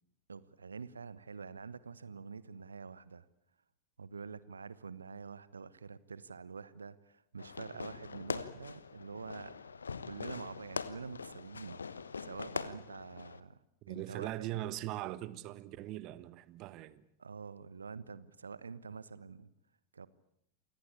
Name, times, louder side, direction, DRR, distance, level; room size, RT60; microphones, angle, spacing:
voice 1, 0.3-3.2 4.0-9.5 10.0-11.8 12.2-13.6 13.9-14.5 17.2-19.5 19.9-20.1, right 5 dB, 75° right, 1.1 m, -46 dB
Fireworks, 7.4-13.4, left 5 dB, 75° left, 1.1 m, -42 dB
voice 2, 13.8-17.0, right 15 dB, 40° right, 1.4 m, -41 dB
28.0 x 18.0 x 8.6 m
figure-of-eight pair, 90°, 0 cm